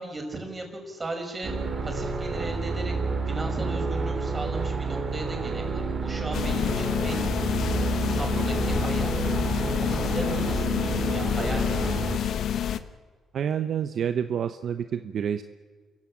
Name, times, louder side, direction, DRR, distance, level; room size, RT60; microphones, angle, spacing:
voice 1, 0.0-1.5 1.8-2.9 3.3-7.2 8.1-9.1 9.8-12.4, right 2 dB, 25° right, 3 dB, 6.1 m, -36 dB
sound 1, 1.4-12.2, right 4 dB, 40° right, 3.4 m, -29 dB
sound 2, 6.3-12.8, left 9 dB, 70° left, 1.1 m, -28 dB
voice 2, 13.3-15.4, right 8 dB, 60° right, 9 dB, 0.9 m, -28 dB
27.5 x 15.0 x 8.8 m, 1.5 s
cardioid pair, 90°, 0 cm